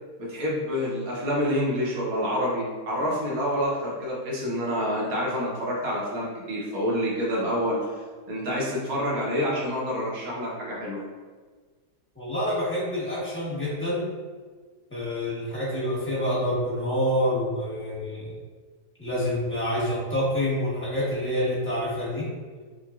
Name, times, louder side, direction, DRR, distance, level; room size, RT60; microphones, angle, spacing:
voice 1, 0.2-7.8 8.3-11.0, equal, 60° right, -5 dB, 1.4 m, -27 dB
voice 2, 12.1-14.1 14.9-18.4 19.0-22.3, equal, 10° left, -8 dB, 0.9 m, -27 dB
5.7 x 2.3 x 2.3 m, 1.4 s
omnidirectional pair, 1.8 m